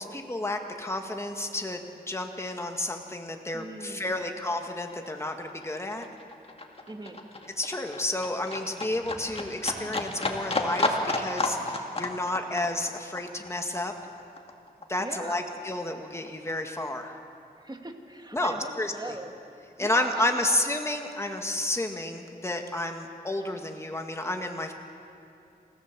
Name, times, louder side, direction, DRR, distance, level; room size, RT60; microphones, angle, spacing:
voice 1, 0.0-6.1 7.6-13.9 14.9-17.2 18.3-19.1 19.8-24.7, left 1 dB, 15° left, 4 dB, 1.8 m, -31 dB
voice 2, 3.5-4.3 6.9-7.2 15.0-15.4 17.6-19.4 19.8-20.6, right 1 dB, 25° right, 4 dB, 2.2 m, -40 dB
Livestock farm animals working animals, 3.8-3.9 4.2-15.2 15.5-16.5 16.8-16.9, left 2 dB, 35° left, 2.2 m, -32 dB
27.0 x 16.0 x 7.5 m, 2.6 s
wide cardioid pair, 75°, 17 cm